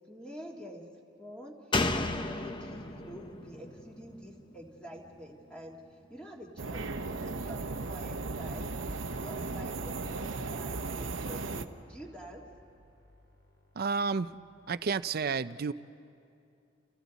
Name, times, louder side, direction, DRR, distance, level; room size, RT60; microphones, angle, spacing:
voice 1, 0.1-0.8 1.2-1.6 1.9-5.8 6.1-8.7 9.1-12.5, equal, 5° left, -2 dB, 1.9 m, -47 dB
Slam, 1.7-5.2 5.5-5.6, left 2 dB, 25° left, 0.8 m, -34 dB
sound 1, 6.6-11.7, right 3 dB, 85° right, 0.9 m, -36 dB
sound 2, 9.9-14.9, equal, 55° left, 3.3 m, -58 dB
voice 2, 13.8-14.3 14.7-15.7, right 5 dB, 50° right, 14 dB, 0.5 m, -30 dB
30.0 x 29.0 x 4.1 m, 2.6 s
head